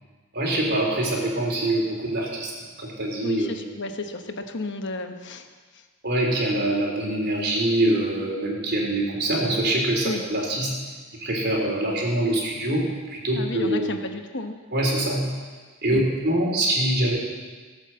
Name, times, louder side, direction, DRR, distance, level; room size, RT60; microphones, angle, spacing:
voice 1, 0.3-2.5 2.8-3.5 6.0-10.7 11.2-13.9 14.7-15.2 15.8-17.2, right 1 dB, 50° right, -1 dB, 3.7 m, -24 dB
voice 2, 3.2-5.5 5.7-5.8 10.0-10.2 13.3-14.6 15.9-16.0, left 2 dB, 55° left, 6 dB, 1.1 m, -32 dB
17.5 x 8.6 x 7.7 m, 1.4 s
head